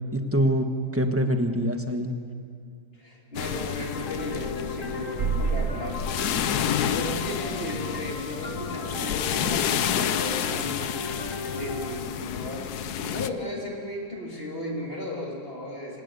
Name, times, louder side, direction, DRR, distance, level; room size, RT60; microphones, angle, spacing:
voice 1, 0.1-2.1, equal, 10° right, 6 dB, 1.3 m, -25 dB
voice 2, 2.9-6.1 6.4-10.9 11.5-16.0, left 1 dB, 35° left, -1 dB, 3.5 m, -35 dB
sound 1, 3.4-13.3, left 10 dB, 80° left, 1.3 m, -30 dB
sound 2, 3.9-11.9, left 2 dB, 50° left, 2.3 m, -36 dB
sound 3, 5.2-7.6, right 5 dB, 55° right, 0.9 m, -31 dB
26.5 x 17.5 x 8.4 m, 2.3 s
omnidirectional pair, 1.6 m